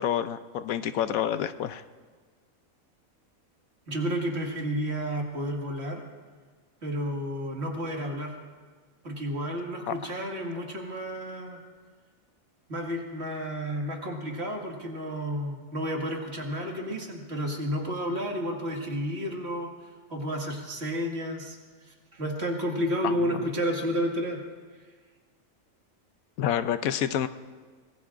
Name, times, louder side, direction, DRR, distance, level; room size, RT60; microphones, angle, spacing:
voice 1, 0.0-1.8 9.9-10.1 26.4-27.3, left 10 dB, 85° left, 11 dB, 1.1 m, -28 dB
voice 2, 3.9-6.0 6.8-8.4 9.0-11.6 12.7-19.7 20.1-24.4, equal, 50° right, 0 dB, 2.3 m, -31 dB
25.0 x 20.5 x 2.5 m, 1.5 s
omnidirectional pair, 1.4 m